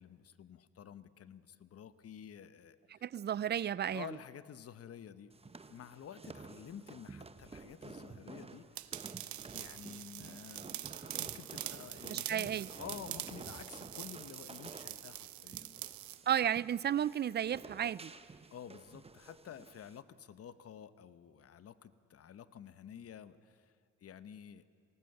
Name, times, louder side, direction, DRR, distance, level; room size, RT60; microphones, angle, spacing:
voice 1, 0.0-3.1 3.9-5.3 5.7-8.8 9.5-15.8 18.5-23.7 24.0-24.6, left 8 dB, 50° left, 14 dB, 0.9 m, -51 dB
voice 2, 2.9-4.1 12.1-12.7 16.3-18.1, right 10 dB, 35° right, 21 dB, 0.4 m, -33 dB
sound 1, 5.3-20.0, right 4 dB, 20° right, 0.9 m, -52 dB
sound 2, 8.8-16.2, right 14 dB, 70° right, 0.7 m, -44 dB
20.0 x 18.0 x 7.8 m, 2.2 s
cardioid pair, 90°, 30 cm